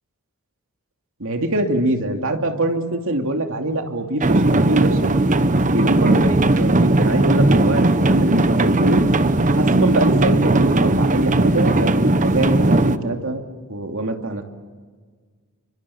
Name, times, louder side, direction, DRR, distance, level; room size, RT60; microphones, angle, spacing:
voice 1, 1.2-5.1 5.6-9.0 9.5-13.4 13.7-14.4, right 1 dB, 60° right, 4 dB, 2.8 m, -23 dB
sound 1, 4.2-13.0, right 2 dB, 35° right, 1.0 m, -17 dB
29.5 x 25.0 x 7.2 m, 1.5 s
head